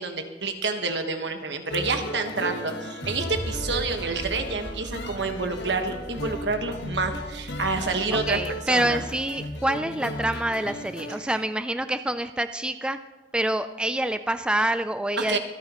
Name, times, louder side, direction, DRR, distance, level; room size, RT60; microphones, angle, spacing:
voice 1, 0.0-8.4 8.7-9.0 15.2-15.4, right 3 dB, 70° right, 6 dB, 1.3 m, -28 dB
sound 1, 1.7-11.2, left 1 dB, 70° left, 1.2 m, -36 dB
sound 2, 3.0-9.2, equal, 30° right, 1.2 m, -38 dB
voice 2, 8.1-13.0 13.3-15.4, right 1 dB, 5° right, 10 dB, 0.3 m, -26 dB
25.5 x 9.6 x 3.0 m, 1.3 s
head